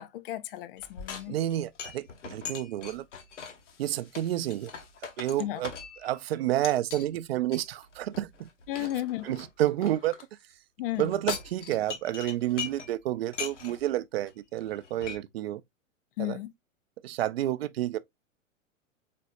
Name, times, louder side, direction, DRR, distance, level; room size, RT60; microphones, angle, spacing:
voice 1, 0.0-1.4 5.4-5.6 8.7-9.2 10.8-11.1 16.2-16.5, left 14 dB, 45° left, 0.5 m, -33 dB
sound 1, 0.8-6.2 6.6-7.1 7.5-10.2 10.9-12.9 13.2-13.8 14.3-14.4 14.6-15.2, left 6 dB, 60° left, 1.2 m, -40 dB
voice 2, 1.3-3.0 3.8-4.7 5.2-5.7 6.0-8.5 8.8-8.9 9.2-10.1 11.0-15.6 16.2-16.4 17.0-18.0, right 13 dB, 50° right, 0.5 m, -30 dB
4.2 x 4.0 x 2.3 m
figure-of-eight pair, 100°, 40 cm